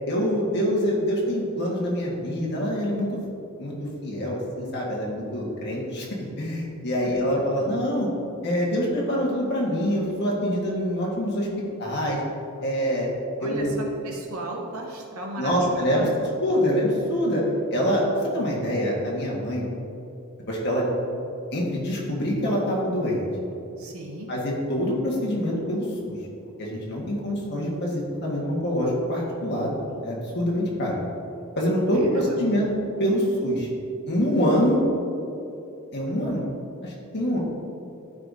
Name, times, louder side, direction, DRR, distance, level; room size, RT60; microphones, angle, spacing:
voice 1, 0.1-3.1 3.6-6.1 6.4-8.1 8.4-11.5 11.8-12.2 12.6-13.1 13.4-13.7 15.4-16.1 16.3-17.4 17.7-18.0 18.3-19.7 20.5-21.1 21.5-23.2 24.3-26.2 26.6-29.7 30.0-30.9 31.6-32.7 33.0-33.7 34.1-34.8 35.9-36.4 36.8-37.4, equal, 50° left, -4 dB, 1.6 m, -25 dB
voice 2, 7.0-7.4 13.4-13.8 14.0-16.3 23.8-24.3 31.9-32.7 33.7-33.8, right 1 dB, 80° right, 0 dB, 1.1 m, -36 dB
12.0 x 4.9 x 2.7 m, 2.8 s
head